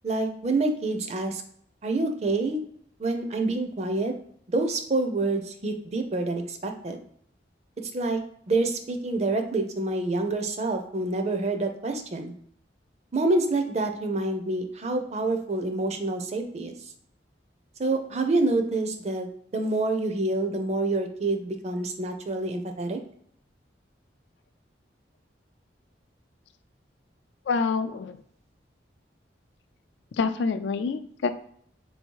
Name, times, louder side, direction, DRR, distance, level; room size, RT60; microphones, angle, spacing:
voice 1, 0.0-1.4 1.8-2.6 3.0-4.1 4.5-7.0 7.9-8.2 8.5-12.3 13.1-16.7 17.8-23.0, right 2 dB, 35° right, 6 dB, 0.5 m, -27 dB
voice 2, 27.5-28.2 30.1-31.3, left 5 dB, 70° left, 10 dB, 0.3 m, -27 dB
3.9 x 2.8 x 4.5 m, 0.66 s
head